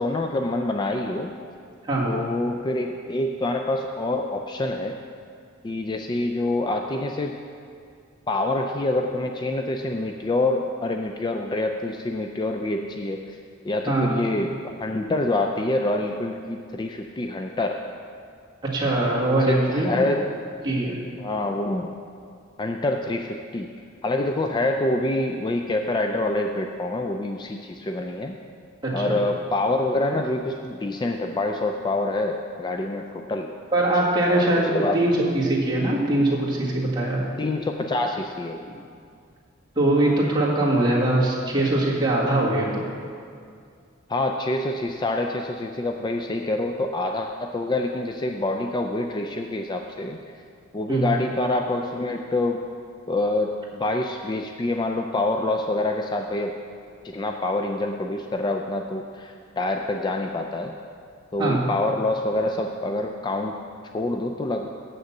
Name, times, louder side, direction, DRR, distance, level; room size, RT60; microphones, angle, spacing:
voice 1, 0.0-1.3 2.1-5.0 5.6-7.4 8.3-13.4 13.6-17.8 19.4-20.3 21.2-21.9 22.6-23.7 24.0-28.4 28.9-33.5 34.3-35.0 37.4-38.6 44.1-50.2 50.7-52.6 53.1-56.6 57.0-60.7 61.3-63.5 63.9-64.7, left 2 dB, 20° left, 3 dB, 0.3 m, -26 dB
voice 2, 1.8-2.2 13.9-14.1 18.7-20.0 20.6-20.9 28.8-29.2 33.7-37.2 39.8-42.8 50.9-51.1 61.4-61.6, right 1 dB, 20° right, -6 dB, 1.7 m, -22 dB
7.6 x 6.5 x 7.1 m, 2.3 s
head